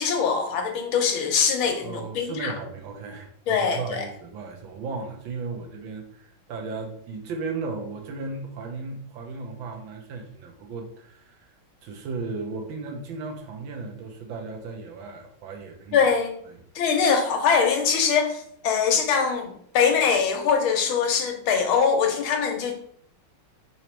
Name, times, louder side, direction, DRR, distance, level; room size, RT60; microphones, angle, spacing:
voice 1, 0.0-2.5 3.5-4.0 15.9-16.3 16.7-22.8, left 6 dB, 75° left, 4 dB, 1.5 m, -23 dB
voice 2, 1.6-11.5 11.8-16.0 16.5-16.6, right 4 dB, 75° right, 2 dB, 1.4 m, -35 dB
4.1 x 2.9 x 4.4 m, 0.64 s
omnidirectional pair, 2.3 m